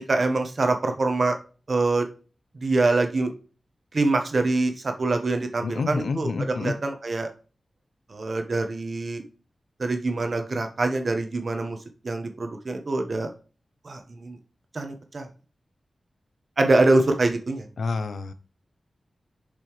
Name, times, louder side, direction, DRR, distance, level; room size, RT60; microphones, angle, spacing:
voice 1, 0.1-1.4 1.7-2.1 2.6-3.3 3.9-6.3 6.6-7.3 8.1-9.2 9.8-11.8 12.0-13.3 13.8-14.4 14.7-15.3 16.6-17.7, right 2 dB, 50° right, 6 dB, 1.3 m, -24 dB
voice 2, 5.6-6.7 17.8-18.3, left 4 dB, 80° left, 11 dB, 0.7 m, -28 dB
7.3 x 5.2 x 3.2 m, 0.37 s
wide cardioid pair, 90°, 0 cm